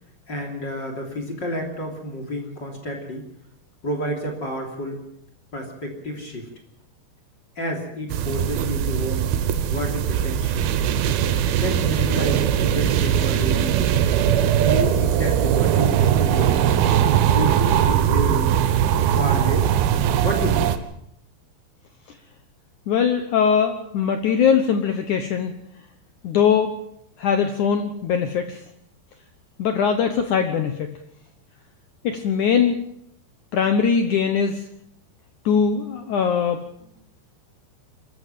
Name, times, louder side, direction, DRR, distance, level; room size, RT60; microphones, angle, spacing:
voice 1, 0.3-3.2 3.8-5.0 5.5-6.5 7.6-9.3 9.7-10.7 11.5-13.9 14.6-16.8 17.3-18.6 19.1-19.7 20.2-20.7, equal, 25° left, 2 dB, 3.1 m, -30 dB
sound 1, 8.1-20.8, right 10 dB, 70° right, 2.6 m, -20 dB
voice 2, 22.9-25.5 26.2-26.7 27.2-28.6 29.6-30.9 32.0-32.8 33.5-34.6 35.4-36.6, left 7 dB, 85° left, 7 dB, 1.7 m, -21 dB
25.0 x 14.5 x 7.6 m, 0.73 s
omnidirectional pair, 5.3 m